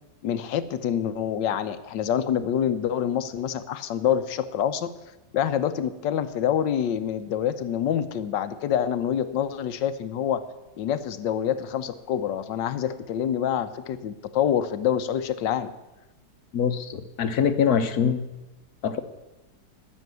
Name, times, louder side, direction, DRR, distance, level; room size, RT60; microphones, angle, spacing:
voice 1, 0.2-4.9 5.3-10.4 10.8-15.7, left 9 dB, 75° left, 12 dB, 1.4 m, -26 dB
voice 2, 16.5-18.3 18.8-19.0, left 7 dB, 60° left, 10 dB, 1.3 m, -24 dB
13.0 x 6.7 x 9.4 m, 1.0 s
omnidirectional pair, 2.0 m